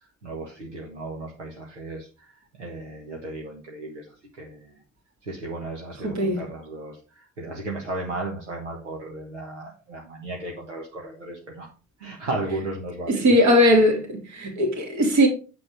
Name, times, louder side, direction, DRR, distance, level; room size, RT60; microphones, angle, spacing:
voice 1, 0.2-2.3 2.6-4.1 4.3-4.8 5.2-11.7 12.0-13.4 15.1-15.2, right 2 dB, 85° right, 1.4 m, -35 dB
voice 2, 6.0-6.4 13.1-15.3, equal, 55° right, 2.8 m, -19 dB
8.7 x 5.9 x 4.8 m
figure-of-eight pair, 40°, 35 cm